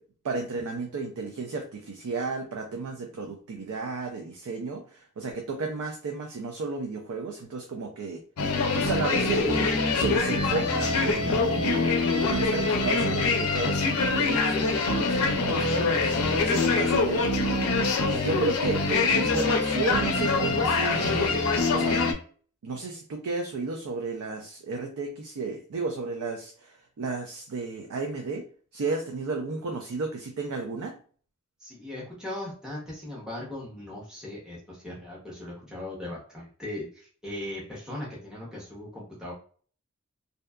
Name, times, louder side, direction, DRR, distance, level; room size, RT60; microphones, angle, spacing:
voice 1, 0.2-8.2 8.7-11.8 12.2-13.8 14.1-17.6 18.1-21.4 21.7-22.1 22.6-28.5 28.7-31.0, right 3 dB, 80° right, 2 dB, 0.4 m, -33 dB
sound 1, 8.4-22.1, left 3 dB, 80° left, 0.5 m, -24 dB
voice 2, 31.6-39.3, left 1 dB, 5° right, -5 dB, 0.7 m, -38 dB
2.7 x 2.2 x 2.2 m, 0.44 s
head